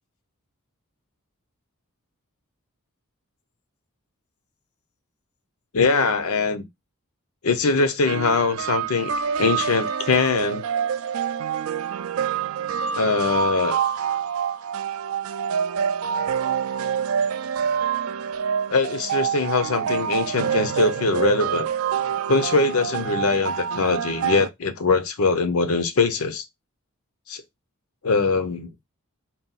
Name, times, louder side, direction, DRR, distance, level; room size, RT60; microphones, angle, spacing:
voice 1, 5.7-6.7 7.4-9.1 9.4-10.6 12.9-13.8 18.7-21.7 22.3-26.4 27.3-27.4 28.0-28.7, left 4 dB, 75° left, 0.7 m, -22 dB
sound 1, 8.1-24.5, right 7 dB, 70° right, 0.3 m, -26 dB
4.0 x 2.3 x 4.1 m
head